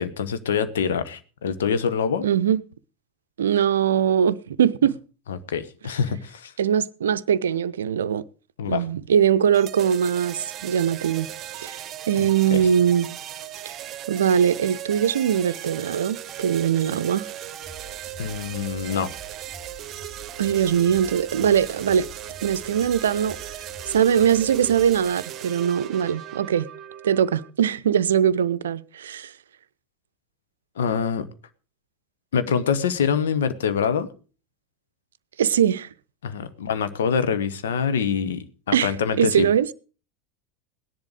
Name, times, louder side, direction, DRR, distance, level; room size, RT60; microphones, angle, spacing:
voice 1, 0.0-2.3 5.3-6.5 8.6-8.8 12.2-12.6 18.2-19.1 30.8-31.3 32.3-34.1 36.2-39.5, left 6 dB, 65° left, 1.3 m, -25 dB
voice 2, 2.2-2.6 3.4-4.9 6.6-8.2 8.7-11.3 11.5-11.8 12.1-13.2 13.7-13.8 14.1-17.3 20.4-22.1 22.4-23.6 23.9-26.7 27.0-29.3 35.4-35.9 38.7-38.9 39.2-39.7, right 8 dB, 70° right, 0.6 m, -21 dB
sound 1, 9.5-27.5, right 12 dB, 35° right, 0.9 m, -37 dB
sound 2, 17.6-25.1, right 1 dB, 20° left, 3.9 m, -46 dB
17.5 x 10.5 x 4.9 m
figure-of-eight pair, 80°, 0 cm